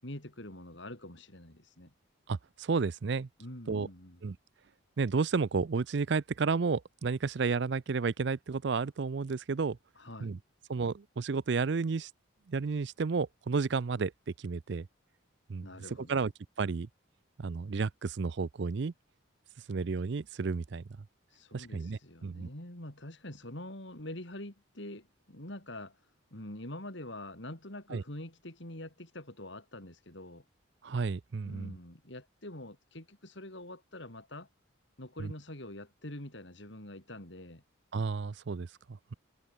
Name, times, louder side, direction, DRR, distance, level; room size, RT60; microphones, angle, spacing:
voice 1, 0.0-1.9 3.4-4.2 10.0-10.3 15.6-16.2 21.3-26.0 26.3-30.5 31.4-34.5 35.0-37.6, left 1 dB, 60° left, 4.1 m, -45 dB
voice 2, 2.3-3.3 3.7-3.9 4.2-4.4 5.0-9.8 10.2-10.4 10.7-12.1 12.5-14.1 14.4-14.9 15.5-15.7 16.1-16.3 16.6-16.9 17.4-18.9 19.7-20.8 21.5-22.5 27.9-28.0 30.8-31.7 35.2-35.3 37.9-39.1, right 4 dB, 55° right, 0.5 m, -32 dB
head